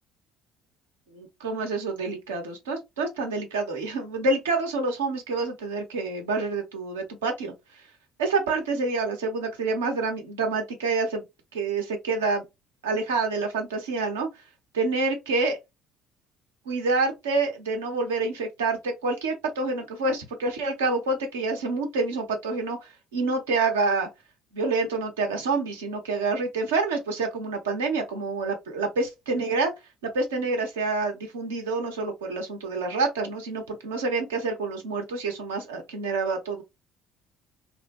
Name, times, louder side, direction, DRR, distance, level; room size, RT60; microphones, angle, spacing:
voice 1, 1.1-7.5 8.2-11.2 11.5-12.4 12.8-14.3 14.7-15.6 16.7-24.1 24.5-29.7 30.0-36.6, right 3 dB, 80° right, 1.0 m, -27 dB
3.4 x 2.1 x 2.9 m
hypercardioid pair, 55°, 0 cm